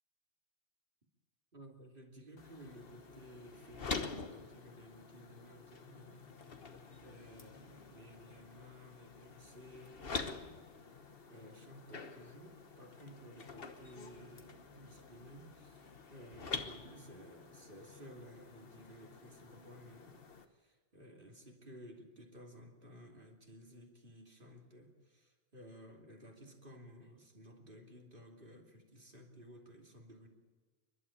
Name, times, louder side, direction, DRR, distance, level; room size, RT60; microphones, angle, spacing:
voice 1, 1.5-6.3 7.0-10.6 11.3-30.3, equal, 50° right, 1 dB, 3.0 m, -55 dB
sound 1, 2.4-20.5, left 4 dB, 55° left, 1.4 m, -47 dB
28.0 x 12.0 x 8.6 m, 1.4 s
omnidirectional pair, 1.1 m